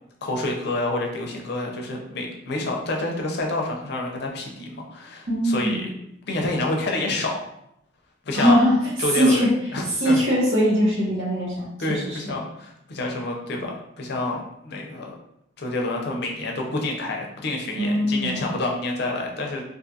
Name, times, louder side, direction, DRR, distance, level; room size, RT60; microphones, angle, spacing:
voice 1, 0.2-5.9 6.3-7.4 8.3-8.6 9.0-10.2 11.8-13.7 14.0-15.2 15.6-19.6, left 2 dB, 55° left, 0 dB, 0.5 m, -28 dB
voice 2, 5.3-5.9 8.3-9.5 10.0-12.4 17.8-18.4, equal, 65° right, -6 dB, 1.1 m, -21 dB
2.5 x 2.4 x 2.6 m, 0.78 s
head